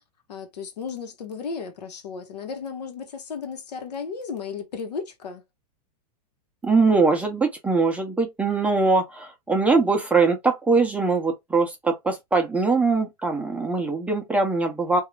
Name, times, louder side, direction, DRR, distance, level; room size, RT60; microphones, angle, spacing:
voice 1, 0.3-5.4, left 5 dB, 85° left, 0.9 m, -34 dB
voice 2, 6.6-15.0, right 3 dB, 5° right, 0.6 m, -22 dB
2.4 x 2.0 x 3.0 m
hypercardioid pair, 130°, 20 cm